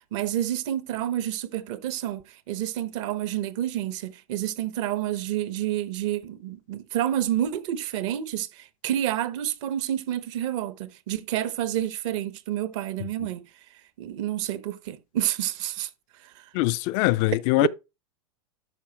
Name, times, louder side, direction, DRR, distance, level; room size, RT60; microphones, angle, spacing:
voice 1, 0.1-13.4 14.0-15.9 17.6-17.7, right 12 dB, 55° right, 0.9 m, -29 dB
voice 2, 16.5-17.7, left 19 dB, 45° left, 0.4 m, -22 dB
12.0 x 4.5 x 2.9 m
hypercardioid pair, 105°, 19 cm